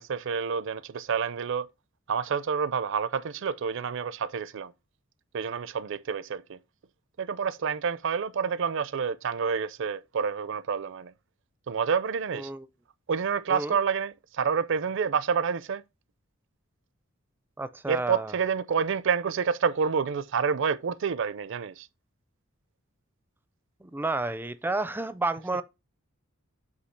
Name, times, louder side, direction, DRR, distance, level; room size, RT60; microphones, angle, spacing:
voice 1, 0.0-1.7 2.1-4.7 5.3-6.6 7.2-11.1 11.7-12.5 13.1-15.8 17.9-21.9, right 6 dB, 60° right, 0.5 m, -28 dB
voice 2, 12.3-12.7 13.5-13.8 17.6-18.3 23.8-25.6, right 2 dB, 10° right, 0.4 m, -31 dB
8.3 x 2.8 x 5.7 m
head